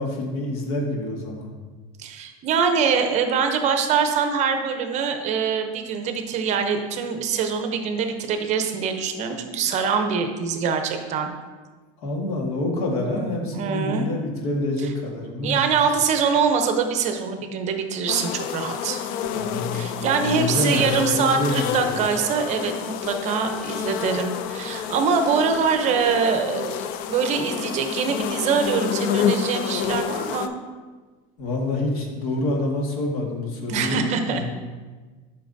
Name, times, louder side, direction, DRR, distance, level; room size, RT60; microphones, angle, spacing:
voice 1, 0.0-1.5 12.0-15.7 19.3-21.9 31.4-34.5, left 2 dB, 75° left, 0 dB, 1.6 m, -27 dB
voice 2, 2.0-11.3 13.5-14.1 14.8-14.9 15.4-19.0 19.7-30.5 33.7-34.5, right 6 dB, 40° right, 6 dB, 0.7 m, -24 dB
sound 1, 18.1-30.5, left 8 dB, 50° left, 0.4 m, -29 dB
8.5 x 5.8 x 2.7 m, 1.3 s
supercardioid pair, 145°, 18 cm